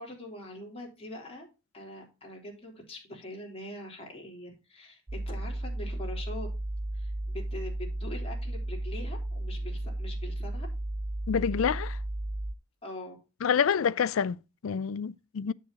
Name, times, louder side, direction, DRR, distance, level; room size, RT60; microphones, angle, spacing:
voice 1, 0.0-1.5 1.7-6.5 6.9-10.7 12.8-13.2, left 1 dB, 30° left, 3.6 m, -43 dB
sound 1, 5.1-12.5, right 1 dB, 20° right, 0.4 m, -34 dB
voice 2, 11.3-12.0 13.4-15.5, left 7 dB, 85° left, 0.4 m, -27 dB
10.0 x 7.7 x 2.8 m
head